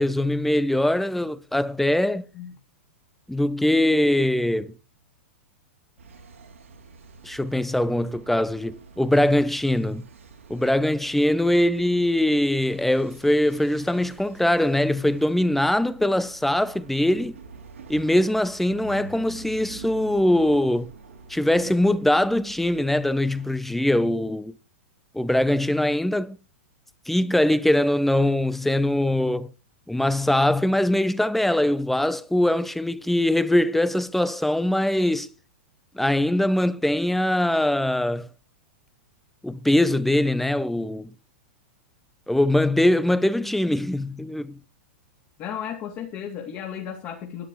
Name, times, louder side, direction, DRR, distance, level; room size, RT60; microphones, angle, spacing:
voice 1, 0.0-2.2 3.3-4.7 7.2-10.1 10.5-17.4 17.9-20.9 21.3-24.5 25.1-26.4 27.1-29.5 29.9-35.3 35.9-38.3 39.4-41.1 42.3-44.6, left 1 dB, 5° left, 0.7 m, -22 dB
sound 1, 6.0-23.5, right 4 dB, 85° right, 2.7 m, -47 dB
voice 2, 45.4-47.5, left 8 dB, 40° left, 3.1 m, -34 dB
12.5 x 10.0 x 4.6 m
hypercardioid pair, 115°, 7 cm